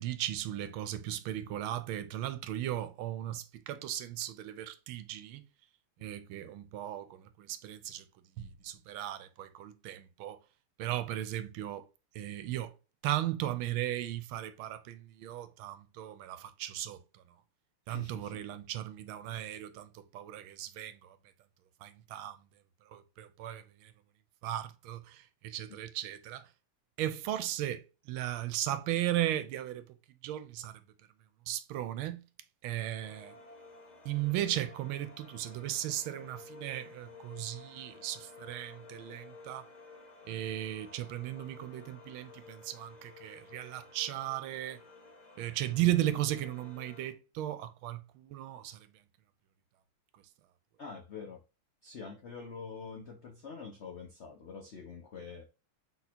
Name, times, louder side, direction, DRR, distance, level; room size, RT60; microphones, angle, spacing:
voice 1, 0.0-5.4 6.0-8.0 8.4-10.4 10.8-11.8 12.1-12.7 13.0-17.0 17.9-21.2 21.8-22.4 22.9-23.9 24.4-26.5 27.0-27.8 28.1-29.8 30.2-30.8 31.5-32.2 32.6-33.3 34.0-39.6 40.3-44.8 45.4-48.9, right 13 dB, 80° right, 1.4 m, -36 dB
voice 2, 17.9-18.4 50.8-51.4 51.8-55.5, left 5 dB, 80° left, 0.6 m, -45 dB
sound 1, 33.0-47.1, left 3 dB, 40° left, 0.6 m, -53 dB
4.2 x 4.0 x 2.7 m
omnidirectional pair, 2.3 m